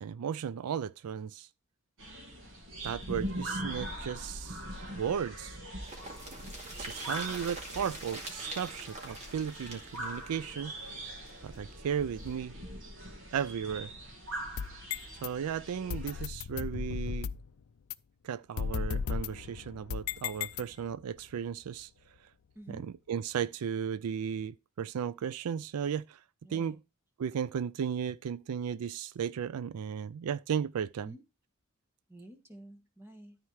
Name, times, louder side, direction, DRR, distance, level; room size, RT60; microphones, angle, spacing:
voice 1, 0.0-1.5 2.8-5.6 6.8-10.7 11.4-12.5 13.3-13.9 15.2-17.3 18.2-21.9 22.7-26.2 26.5-26.8 27.2-31.1, right 7 dB, 80° right, 0.4 m, -35 dB
sound 1, 2.0-16.3, right 1 dB, 60° right, 2.5 m, -42 dB
sound 2, 5.8-11.6 11.9-12.0 12.2-12.3, right 2 dB, 30° right, 2.3 m, -44 dB
sound 3, 14.4-15.3 15.9-17.5 17.9-18.0 18.6-21.0, left 6 dB, 70° left, 0.4 m, -36 dB
voice 2, 22.5-22.9 26.4-26.8 31.0-31.2 32.1-33.4, right 1 dB, 10° right, 1.5 m, -50 dB
13.0 x 4.5 x 4.7 m
head